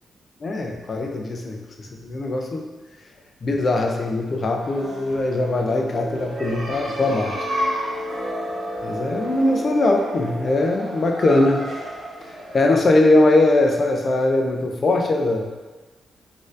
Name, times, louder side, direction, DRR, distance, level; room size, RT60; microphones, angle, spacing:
voice 1, 0.4-2.7 3.4-7.5 8.8-11.6 12.2-15.5, left 2 dB, 40° left, 2 dB, 0.4 m, -21 dB
sound 1, 4.6-14.0, equal, 70° right, 0.8 m, -31 dB
4.1 x 2.6 x 2.4 m, 1.3 s
wide cardioid pair, 155°, 0 cm